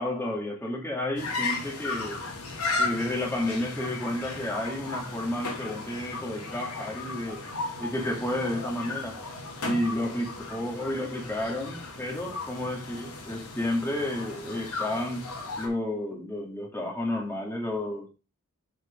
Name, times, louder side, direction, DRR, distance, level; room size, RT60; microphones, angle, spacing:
voice 1, 0.0-2.2 2.8-7.5 7.8-9.2 9.6-18.1, left 1 dB, 10° left, 2.3 m, -31 dB
sound 1, 1.2-15.7, left 3 dB, 85° left, 3.4 m, -35 dB
6.8 x 6.4 x 5.1 m
head